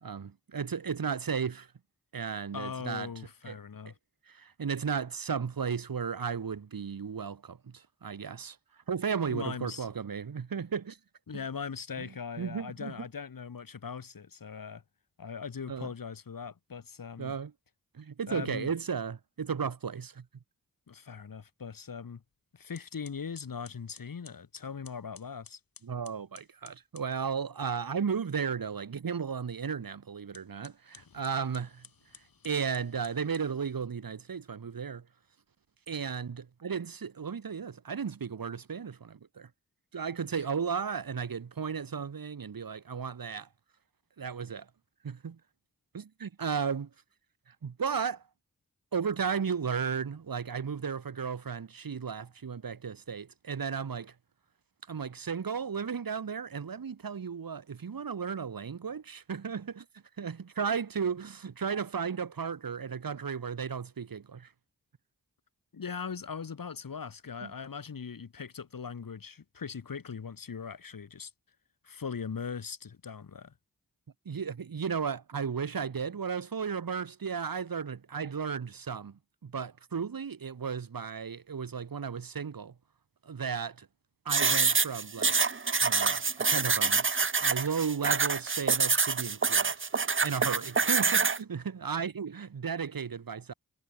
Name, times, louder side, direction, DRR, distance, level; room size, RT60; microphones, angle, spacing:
voice 1, 0.0-1.7 2.1-3.1 3.5-3.6 3.9-4.0 4.3-8.6 8.9-11.0 12.0-12.1 12.4-12.9 15.7-15.9 17.2-17.5 17.9-20.3 25.8-31.9 32.4-35.1 35.9-39.5 39.9-43.5 44.2-44.7 45.0-45.4 45.9-46.9 47.5-48.2 48.9-54.1 54.9-59.9 60.2-64.5 67.4-67.5 74.3-82.7 83.2-83.9 84.3-85.4 85.8-89.7 90.2-93.5, right 6 dB, 80° right, 2.0 m, -34 dB
voice 2, 2.5-3.9 9.3-9.9 11.3-14.8 15.2-17.3 18.3-18.7 20.9-22.2 22.5-25.6 40.3-40.4 65.7-71.3 71.8-73.5, left 6 dB, 75° left, 1.9 m, -40 dB
sound 1, 22.2-22.4 22.7-27.1 30.2-33.9, left 6 dB, 90° left, 5.8 m, -56 dB
sound 2, 84.3-91.4, right 5 dB, 35° right, 0.8 m, -26 dB
cardioid pair, 40°, 34 cm